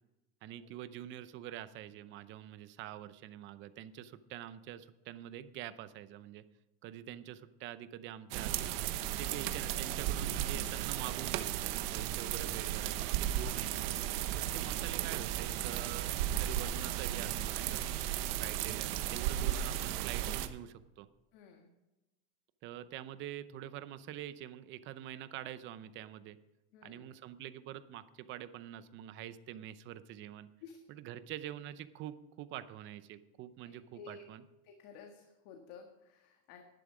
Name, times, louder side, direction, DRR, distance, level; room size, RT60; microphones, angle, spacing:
voice 1, 0.4-6.4 6.8-8.7 9.2-13.8 14.3-16.1 16.4-17.8 18.4-21.1 22.6-26.4 26.8-30.5 30.9-34.4, right 12 dB, 40° right, 14 dB, 0.7 m, -46 dB
sound 1, 8.3-20.5, right 12 dB, 60° right, 1.0 m, -35 dB
voice 2, 21.3-21.7 26.7-27.1 30.6-30.8 33.6-34.2 34.6-36.6, left 6 dB, 60° left, 3 dB, 1.7 m, -53 dB
11.5 x 10.5 x 5.0 m, 1.0 s
supercardioid pair, 155°, 32 cm